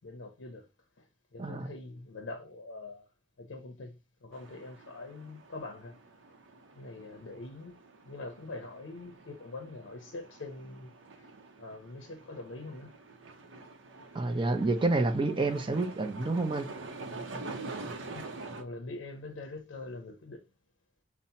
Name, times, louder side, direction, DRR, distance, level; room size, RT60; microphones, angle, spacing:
voice 1, 0.0-0.6 1.3-3.1 3.4-3.9 4.2-6.0 6.7-7.8 8.1-10.9 11.2-11.3 11.6-12.9 18.1-18.3 18.5-20.4, left 2 dB, 85° left, 0.6 m, -43 dB
voice 2, 1.4-1.7 14.1-16.7, right 2 dB, 25° right, 0.5 m, -28 dB
sound 1, 4.3-18.6, right 3 dB, 85° right, 0.6 m, -46 dB
5.5 x 2.1 x 2.7 m
head